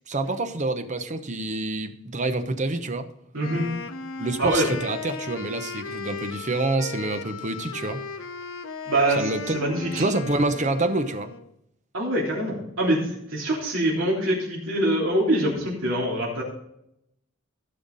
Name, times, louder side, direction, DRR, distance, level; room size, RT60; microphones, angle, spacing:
voice 1, 0.1-3.1 4.2-8.0 9.2-9.6 10.0-11.3, right 2 dB, 35° right, 9 dB, 0.9 m, -27 dB
voice 2, 3.3-3.7 4.4-4.7 8.8-10.0 11.9-16.4, right 1 dB, 70° right, -5 dB, 3.5 m, -24 dB
Wind instrument woodwind instrument, 3.4-11.5, left 4 dB, 85° left, 0.8 m, -36 dB
15.5 x 5.8 x 4.1 m, 0.77 s
head